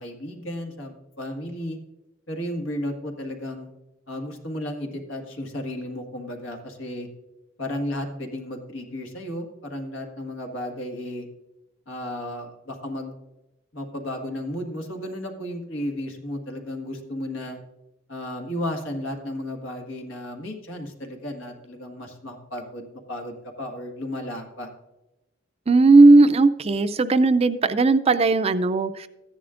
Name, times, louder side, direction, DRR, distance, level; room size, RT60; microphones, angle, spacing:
voice 1, 0.0-1.8 2.3-3.7 4.1-7.1 7.6-11.3 11.9-13.1 13.7-17.6 18.1-24.7, left 1 dB, 85° left, 4 dB, 1.7 m, -33 dB
voice 2, 25.7-29.1, right 3 dB, 30° right, 11 dB, 0.4 m, -16 dB
14.0 x 10.5 x 2.5 m, 1.0 s
head